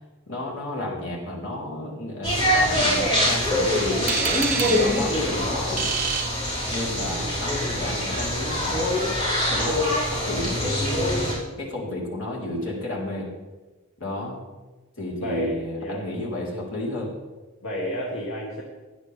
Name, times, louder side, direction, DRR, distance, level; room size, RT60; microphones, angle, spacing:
voice 1, 0.3-4.2 4.6-5.8 6.7-8.9 9.5-13.3 14.0-14.4 15.0-17.1, left 1 dB, 65° left, -3 dB, 3.9 m, -32 dB
sound 1, 2.2-11.3, left 1 dB, 25° left, 5.1 m, -24 dB
sound 2, 4.1-7.1, right 6 dB, 40° right, 1.0 m, -29 dB
voice 2, 7.0-7.4 15.2-16.0 17.6-18.6, equal, 85° left, -3 dB, 2.1 m, -31 dB
17.0 x 11.0 x 3.5 m, 1.2 s
head